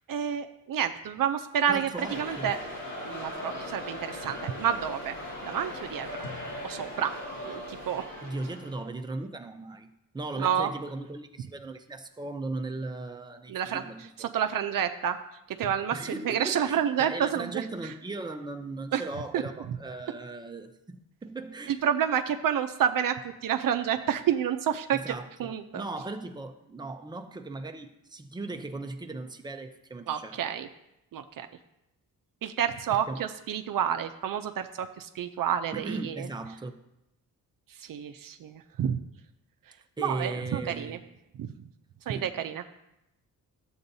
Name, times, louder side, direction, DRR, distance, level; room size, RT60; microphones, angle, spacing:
voice 1, 0.1-1.9 2.2-2.6 3.0-5.2 5.4-6.1 6.6-7.1 7.4-8.0 10.4-10.7 13.5-13.8 14.2-15.2 15.6-17.9 18.9-19.0 19.3-19.4 21.8-25.8 30.1-30.7 31.1-31.5 32.4-36.3 37.8-39.0 40.0-41.0 41.4-41.5 42.1-42.6, right 9 dB, 65° right, 7 dB, 0.5 m, -29 dB
voice 2, 1.7-2.5 8.2-14.3 15.9-21.8 24.9-30.4 33.1-33.3 35.7-36.8 40.0-41.0 42.1-42.4, right 2 dB, 10° right, 5 dB, 0.5 m, -38 dB
sound 1, 2.0-8.8, left 1 dB, 50° left, 2.6 m, -39 dB
13.0 x 7.8 x 2.7 m, 0.87 s
wide cardioid pair, 140°, 35 cm